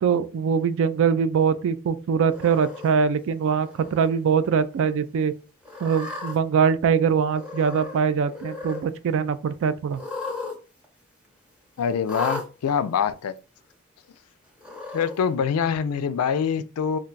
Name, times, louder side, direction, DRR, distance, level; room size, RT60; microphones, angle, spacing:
voice 1, 0.0-5.3 5.8-10.0, right 6 dB, 60° right, 0.3 m, -22 dB
Cat, 2.3-2.9 3.6-4.1 4.4-4.5 5.6-6.4 7.3-8.0 8.3-8.8 9.9-10.6 10.8-10.9 12.0-12.5 13.4-13.5 14.6-15.2, left 3 dB, 5° right, 0.6 m, -34 dB
voice 2, 11.8-13.3 14.9-17.0, left 7 dB, 75° left, 0.3 m, -24 dB
2.4 x 2.2 x 3.8 m
head